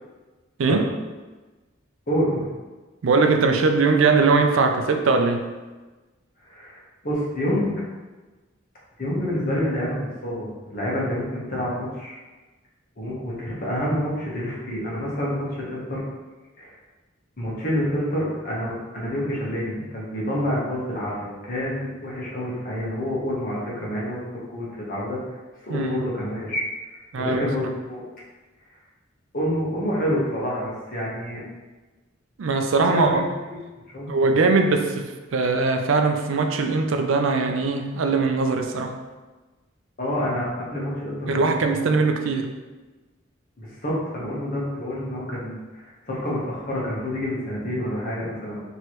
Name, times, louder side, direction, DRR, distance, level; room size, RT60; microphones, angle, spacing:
voice 1, 2.1-2.5 6.4-7.7 9.0-12.2 13.0-16.0 16.6-16.7 17.4-24.2 24.5-25.2 25.6-26.7 27.2-28.0 29.3-31.4 32.8-33.2 33.9-34.0 40.0-41.5 41.8-41.9 43.6-48.6, equal, 45° left, -5 dB, 1.2 m, -28 dB
voice 2, 3.0-5.5 25.7-25.9 27.1-27.4 32.4-33.2 34.1-38.9 41.3-42.5, right 4 dB, 75° right, 5 dB, 0.4 m, -21 dB
4.6 x 3.1 x 3.0 m, 1.2 s
head